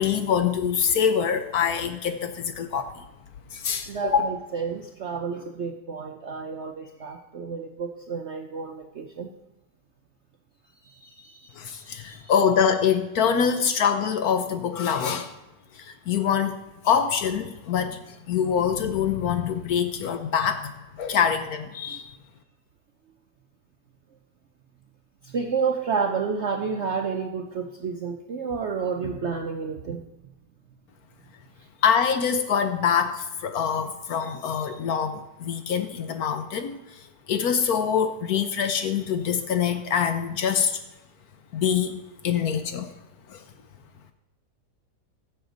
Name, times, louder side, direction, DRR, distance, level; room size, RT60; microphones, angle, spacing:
voice 1, 0.0-2.9 3.5-4.3 11.6-15.3 15.7-16.6 16.8-20.7 21.0-22.1 31.8-37.0 37.3-40.8 41.5-42.9 43.3-43.4, left 7 dB, 65° left, 9 dB, 1.0 m, -25 dB
voice 2, 3.9-9.3 11.0-11.4 12.1-12.2 25.3-30.0, right 5 dB, 65° right, 4 dB, 0.7 m, -30 dB
15.0 x 7.0 x 3.9 m, 1.0 s
omnidirectional pair, 2.0 m